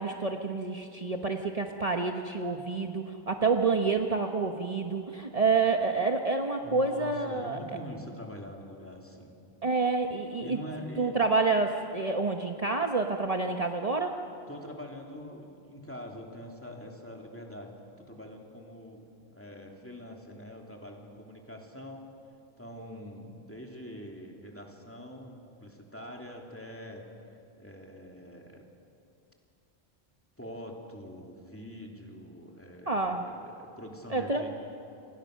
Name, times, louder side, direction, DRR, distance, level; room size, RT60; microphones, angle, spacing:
voice 1, 0.0-7.6 9.6-10.6 11.0-14.1 32.9-33.2 34.1-34.5, right 4 dB, 35° right, 3 dB, 1.2 m, -28 dB
voice 2, 6.6-9.4 10.4-11.2 14.5-22.1 22.6-28.7 30.4-34.5, equal, 10° left, 1 dB, 2.9 m, -44 dB
29.0 x 25.5 x 6.5 m, 2.7 s
omnidirectional pair, 1.1 m